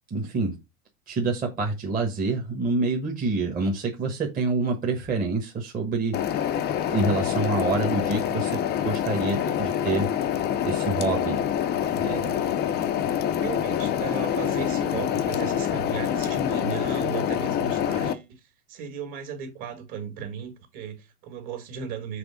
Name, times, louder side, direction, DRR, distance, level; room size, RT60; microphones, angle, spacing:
voice 1, 0.1-0.5 1.1-10.1 10.6-11.4 12.0-12.4, right 3 dB, 20° right, 1.2 m, -27 dB
sound 1, 6.1-18.1, left 9 dB, 25° left, 0.6 m, -26 dB
voice 2, 13.4-18.4 18.7-22.2, right 6 dB, 40° right, 2.1 m, -35 dB
6.3 x 3.4 x 4.9 m
hypercardioid pair, 120°, 44 cm